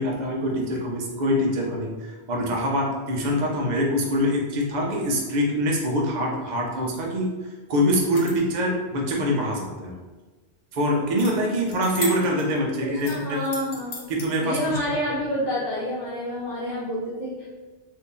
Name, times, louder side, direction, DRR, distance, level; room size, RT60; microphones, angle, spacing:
voice 1, 0.0-7.3 7.7-9.9 10.7-13.4 14.1-14.9, equal, 45° right, -1 dB, 0.6 m, -24 dB
sound 1, 7.9-8.6 11.2-11.3 11.6-12.6 13.0-14.3, left 2 dB, 85° left, 1.0 m, -36 dB
voice 2, 13.0-13.9 14.4-17.5, equal, 40° left, -9 dB, 1.0 m, -28 dB
2.7 x 2.6 x 3.7 m, 1.3 s
omnidirectional pair, 1.2 m